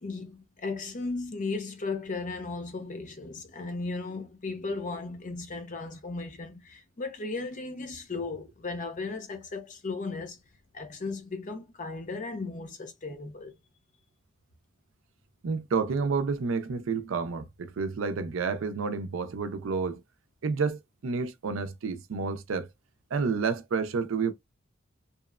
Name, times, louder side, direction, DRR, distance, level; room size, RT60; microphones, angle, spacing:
voice 1, 0.0-10.4 10.7-13.5, left 3 dB, 40° left, 0.6 m, -36 dB
voice 2, 15.4-20.0 20.4-22.7 23.1-24.3, right 5 dB, 80° right, 0.4 m, -30 dB
2.9 x 2.0 x 2.3 m
head